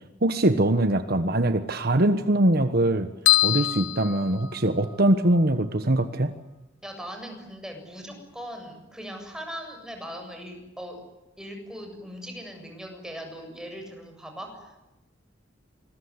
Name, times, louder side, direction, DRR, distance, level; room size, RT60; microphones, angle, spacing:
voice 1, 0.2-3.1 3.4-6.3, right 1 dB, 55° right, 9 dB, 1.3 m, -22 dB
sound 1, 3.3-5.0, left 16 dB, 90° left, 1.3 m, -24 dB
voice 2, 6.8-11.0 11.4-14.9, equal, 5° right, 4 dB, 7.5 m, -39 dB
26.5 x 21.5 x 9.8 m, 0.99 s
head